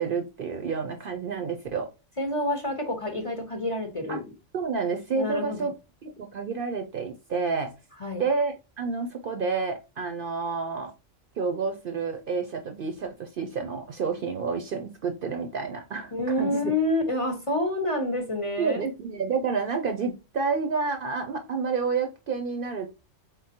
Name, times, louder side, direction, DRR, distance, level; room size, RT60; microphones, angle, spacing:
voice 1, 0.0-1.9 4.1-4.2 4.5-5.7 6.0-7.7 8.2-10.9 11.4-16.7 18.6-22.9, right 5 dB, 55° right, 0.6 m, -29 dB
voice 2, 2.2-4.3 5.1-5.7 8.0-8.2 16.1-18.8, left 1 dB, 35° left, 0.7 m, -28 dB
4.0 x 3.7 x 2.8 m
omnidirectional pair, 1.3 m